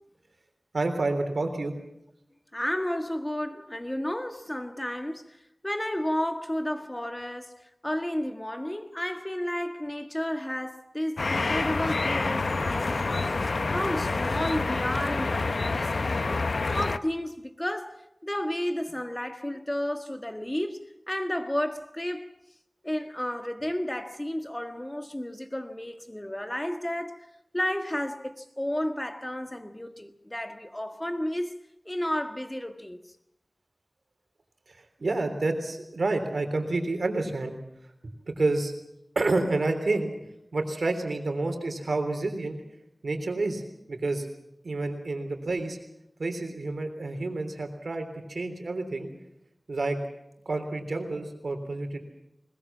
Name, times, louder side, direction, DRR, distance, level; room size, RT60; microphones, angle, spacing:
voice 1, 0.7-1.7 35.0-37.5 38.0-38.7 39.1-40.1 40.5-42.6 43.0-43.6 43.9-44.3 44.6-45.8 46.2-49.1 49.7-50.0 50.4-52.0, right 2 dB, 85° right, 3.4 m, -29 dB
voice 2, 2.5-16.4 16.7-22.3 22.8-27.3 27.5-31.6 31.8-33.0, left 1 dB, 20° left, 1.6 m, -32 dB
sound 1, 11.2-17.0, left 3 dB, 80° left, 0.7 m, -28 dB
21.5 x 20.0 x 7.3 m
wide cardioid pair, 60°, 0 cm